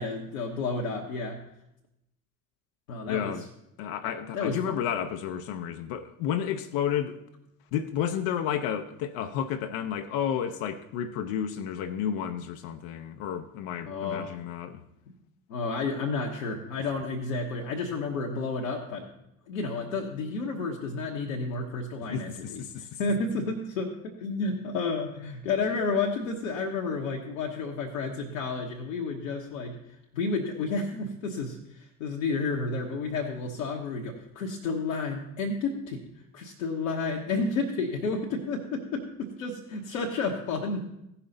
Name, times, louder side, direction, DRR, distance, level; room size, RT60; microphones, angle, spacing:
voice 1, 0.0-1.4 2.9-3.3 4.0-4.6 13.8-14.4 15.5-19.1 19.5-36.0 36.3-40.8, left 3 dB, 70° left, 1.1 m, -31 dB
voice 2, 3.1-3.4 3.8-7.2 7.7-14.8 22.1-23.0, left 9 dB, 55° left, 0.7 m, -31 dB
16.0 x 5.7 x 3.9 m
figure-of-eight pair, 55°, 40 cm